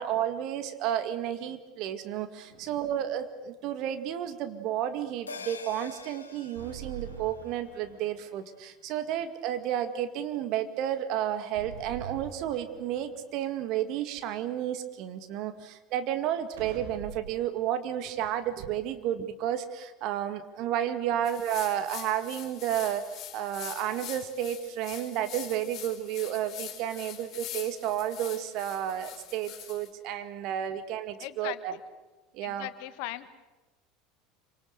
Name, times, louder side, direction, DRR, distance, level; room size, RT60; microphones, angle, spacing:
voice 1, 0.0-23.0 23.3-31.8 32.3-32.7, right 11 dB, 55° right, 9 dB, 2.1 m, -32 dB
sound 1, 2.5-3.2 6.6-8.3 11.6-13.2 16.6-17.5, right 6 dB, 70° right, 3.5 m, -44 dB
sound 2, 5.3-10.0 10.3-10.4, left 5 dB, 80° left, 1.4 m, -48 dB
sound 3, 21.2-29.9, left 11 dB, 45° left, 4.5 m, -44 dB
voice 2, 31.2-31.8 32.4-33.3, left 16 dB, 60° left, 13 dB, 1.4 m, -40 dB
27.0 x 25.5 x 6.8 m, 1.1 s
figure-of-eight pair, 70°, 0 cm